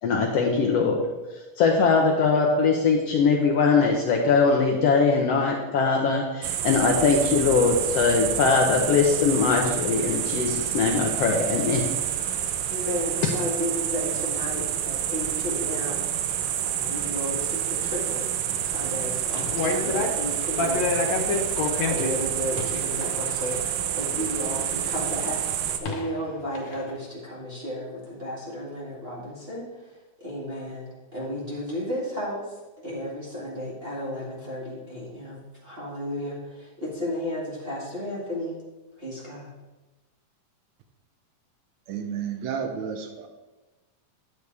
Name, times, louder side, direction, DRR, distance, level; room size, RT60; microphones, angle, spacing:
voice 1, 0.0-1.0 1.6-11.8, left 4 dB, 85° left, 0 dB, 1.4 m, -21 dB
sound 1, 6.4-25.8, right 10 dB, 90° right, 2.3 m, -28 dB
voice 2, 12.7-16.1 16.6-29.7 30.2-38.6 39.0-39.5, equal, 25° right, -6 dB, 1.5 m, -33 dB
sound 2, 19.3-20.3 20.6-24.2 25.3-25.4 25.9-26.2 26.5-26.9, left 4 dB, 65° left, 2.1 m, -29 dB
voice 3, 41.9-43.3, right 7 dB, 75° right, 5 dB, 1.8 m, -31 dB
10.5 x 8.1 x 3.4 m, 1.2 s
omnidirectional pair, 3.8 m